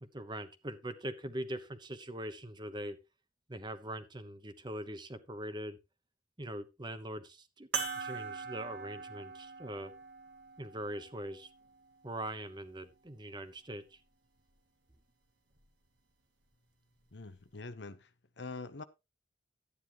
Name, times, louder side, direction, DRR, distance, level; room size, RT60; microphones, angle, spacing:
voice 1, 0.0-3.0 3.5-5.8 6.4-7.7 7.9-9.9 10.6-11.5 12.0-14.0, right 1 dB, 25° right, 1.0 m, -42 dB
sound 1, 7.7-12.5 13.3-13.4 15.6-15.7, right 5 dB, 90° right, 2.1 m, -42 dB
voice 2, 17.1-18.1 18.4-18.8, left 3 dB, 75° left, 1.0 m, -44 dB
12.5 x 9.6 x 3.0 m
head